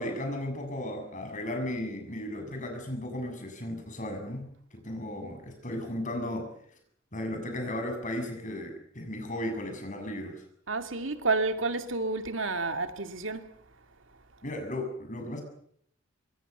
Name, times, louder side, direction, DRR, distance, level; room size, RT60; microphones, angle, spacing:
voice 1, 0.0-6.5 7.1-10.4 14.4-15.4, left 1 dB, 40° left, 7.1 m, -35 dB
voice 2, 10.7-13.5, right 3 dB, 80° right, 2.4 m, -30 dB
25.5 x 23.5 x 6.8 m
head